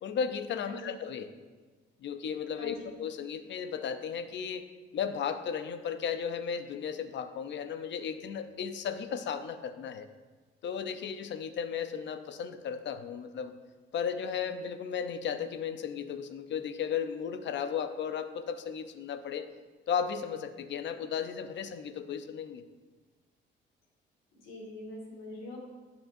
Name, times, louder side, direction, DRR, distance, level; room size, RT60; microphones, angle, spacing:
voice 1, 0.0-1.3 2.0-10.1 10.6-13.5 13.9-19.5 19.9-22.6, left 7 dB, 65° left, 10 dB, 0.7 m, -35 dB
voice 2, 24.4-25.6, left 1 dB, 85° left, -1 dB, 2.2 m, -43 dB
12.0 x 7.2 x 2.7 m, 1.3 s
cardioid pair, 90°, 20 cm